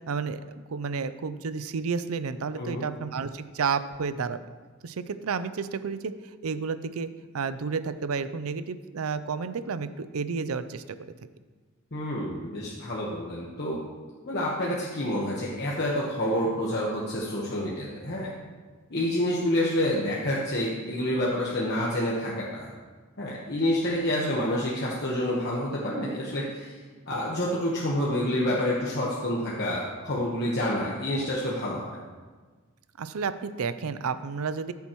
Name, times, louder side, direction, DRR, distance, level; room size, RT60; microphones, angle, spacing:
voice 1, 0.1-4.4 4.8-6.1 6.4-7.1 7.3-10.8 33.0-34.7, right 5 dB, 90° right, 12 dB, 0.5 m, -31 dB
voice 2, 11.9-13.8 14.3-18.3 18.9-22.7 23.2-26.8 27.1-32.0, left 1 dB, 50° left, -5 dB, 1.2 m, -28 dB
13.5 x 7.1 x 3.1 m, 1.4 s
head